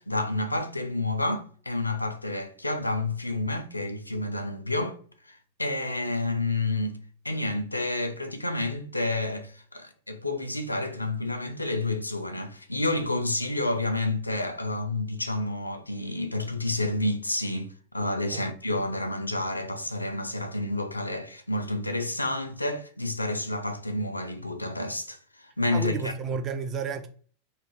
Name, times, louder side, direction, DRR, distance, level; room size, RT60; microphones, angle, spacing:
voice 1, 0.0-5.0 5.3-7.0 7.2-26.1, left 2 dB, 85° left, 0.3 m, -29 dB
voice 2, 25.7-27.1, right 5 dB, 30° right, 0.4 m, -32 dB
2.3 x 2.1 x 3.2 m
figure-of-eight pair, 90°, 0 cm